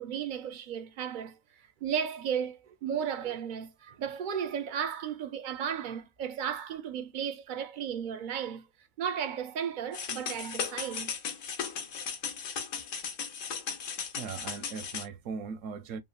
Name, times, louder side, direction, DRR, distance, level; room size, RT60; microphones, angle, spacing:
voice 1, 0.0-1.4 1.8-8.6 9.0-11.1, right 8 dB, 60° right, 0.5 m, -34 dB
sound 1, 9.9-15.1, left 6 dB, 75° left, 1.1 m, -36 dB
voice 2, 14.2-16.0, right 5 dB, 80° right, 0.9 m, -39 dB
3.1 x 2.1 x 2.2 m
omnidirectional pair, 1.4 m